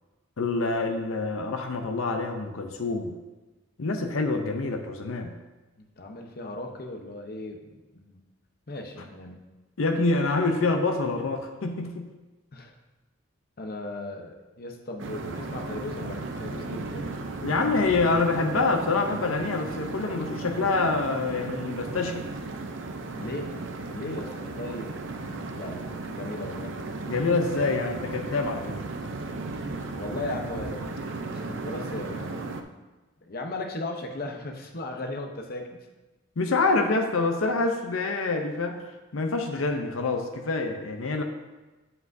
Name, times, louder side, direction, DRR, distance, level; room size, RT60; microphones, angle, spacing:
voice 1, 0.4-3.1 3.8-5.3 9.8-12.1 17.4-22.3 27.1-28.7 36.4-38.8 39.1-41.2, left 3 dB, 85° left, 4 dB, 0.6 m, -26 dB
voice 2, 6.0-8.2 8.7-9.5 12.5-12.7 13.6-17.2 23.1-26.8 29.9-30.9 31.2-32.5 33.2-35.8, left 2 dB, 50° left, 3 dB, 0.8 m, -37 dB
sound 1, 15.0-32.6, right 3 dB, 65° right, 0.6 m, -35 dB
8.0 x 7.7 x 2.6 m, 1.2 s
head